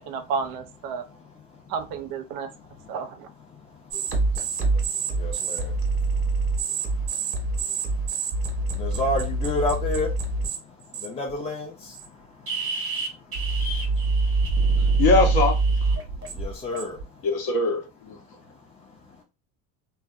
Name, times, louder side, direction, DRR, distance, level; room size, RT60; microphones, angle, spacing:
voice 1, 0.0-1.1 1.7-2.5 2.9-3.3, right 6 dB, 55° right, 0.6 m, -31 dB
voice 2, 1.0-1.7 2.4-3.0 3.5-15.0 16.0-17.3 18.2-19.2, left 1 dB, 15° left, 0.4 m, -35 dB
sound 1, 3.9-10.6 10.9-11.3 11.9-12.1 12.5-17.0, right 3 dB, 30° right, 1.0 m, -25 dB
voice 3, 15.0-15.6 17.2-18.2, left 3 dB, 55° left, 1.0 m, -21 dB
2.5 x 2.1 x 2.3 m
supercardioid pair, 100°, 42 cm